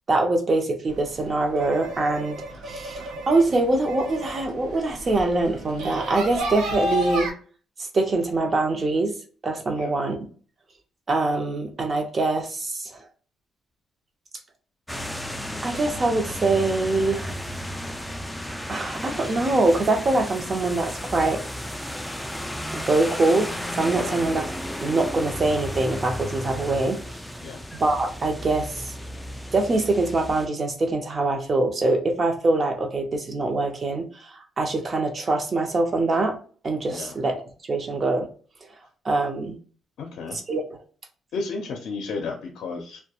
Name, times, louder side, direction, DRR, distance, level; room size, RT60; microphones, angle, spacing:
voice 1, 0.1-2.4 2.6-7.3 7.8-9.1 9.4-10.2 11.1-13.0 15.6-17.4 18.7-21.4 22.7-24.5 24.8-27.0 27.8-28.9 29.5-36.4 36.6-37.4 37.7-38.3 39.0-39.6 40.5-40.6, right 2 dB, 40° right, 4 dB, 0.6 m, -24 dB
sound 1, 0.9-7.3, equal, 85° right, 0.6 m, -32 dB
sound 2, 14.9-30.5, equal, ahead, 0.3 m, -34 dB
voice 2, 23.9-24.3 27.4-27.6 36.9-37.1 40.0-40.4 41.3-43.0, left 4 dB, 75° left, 1 dB, 0.5 m, -33 dB
2.2 x 2.1 x 2.8 m, 0.41 s
cardioid pair, 90°, 0 cm